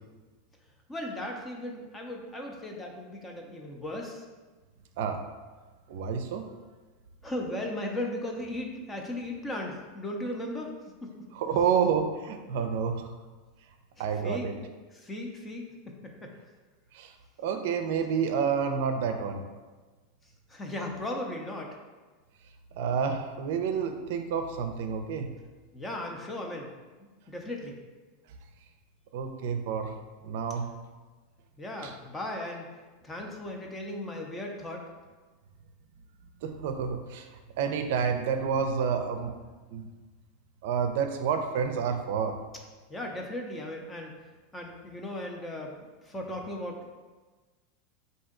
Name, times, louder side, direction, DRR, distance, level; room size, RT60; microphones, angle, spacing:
voice 1, 0.9-4.2 7.2-10.7 11.0-11.1 14.2-14.5 14.9-15.6 16.2-16.3 20.5-21.7 25.7-26.7 27.0-27.8 31.6-32.7 33.0-34.8 42.9-44.1 44.5-46.8, left 1 dB, 15° left, 1 dB, 0.5 m, -36 dB
voice 2, 5.9-6.4 11.3-13.1 14.0-14.6 16.9-17.1 17.4-19.4 22.8-25.3 29.1-29.9 30.2-30.7 31.8-31.9 36.4-37.3 37.6-39.3 39.7-39.9 40.6-42.4, right 6 dB, 70° right, 7 dB, 0.4 m, -29 dB
4.2 x 2.7 x 3.7 m, 1.3 s
supercardioid pair, 140°, 0 cm